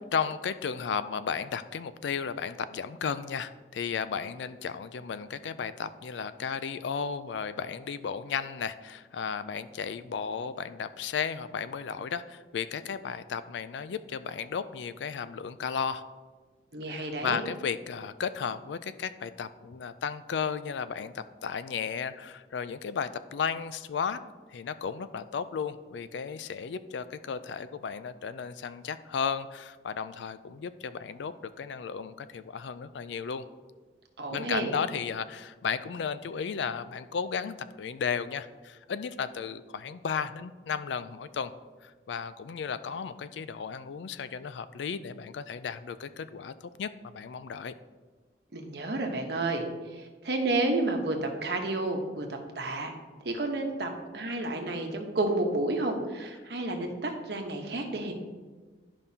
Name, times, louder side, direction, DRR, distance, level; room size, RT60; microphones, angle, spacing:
voice 1, 0.1-16.0 16.9-24.2 24.5-33.4 34.3-41.5 41.8-46.5 46.8-47.7, left 6 dB, 85° left, 13 dB, 0.4 m, -34 dB
voice 2, 16.7-17.4 34.2-34.7 48.5-52.9 53.2-58.1, right 2 dB, 70° right, 3 dB, 1.0 m, -31 dB
11.5 x 5.3 x 2.8 m, 1.4 s
head